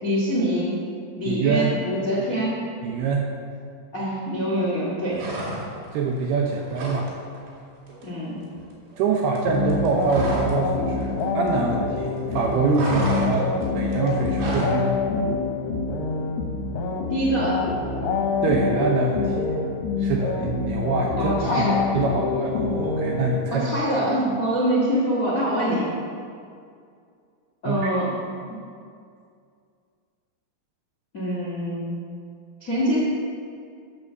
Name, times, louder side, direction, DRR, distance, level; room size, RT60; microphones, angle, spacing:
voice 1, 0.0-0.8 1.1-2.6 3.9-5.3 8.0-8.4 17.1-17.6 21.2-21.9 23.5-25.9 27.6-28.1 31.1-32.1 32.6-33.0, equal, 85° left, -6 dB, 0.7 m, -24 dB
voice 2, 1.3-1.7 2.8-3.3 5.9-7.1 9.0-14.9 18.4-19.5 20.0-21.7 21.9-23.7 27.7-27.9, right 4 dB, 80° right, 0 dB, 2.4 m, -24 dB
sound 1, 5.1-5.9 6.2-7.1 7.4-7.6 7.9-10.6 10.9-12.0 12.2-14.8, right 1 dB, 55° right, 3.8 m, -32 dB
sound 2, 9.5-23.8, left 4 dB, 70° left, 2.7 m, -26 dB
12.5 x 6.2 x 6.8 m, 2.3 s
omnidirectional pair, 5.5 m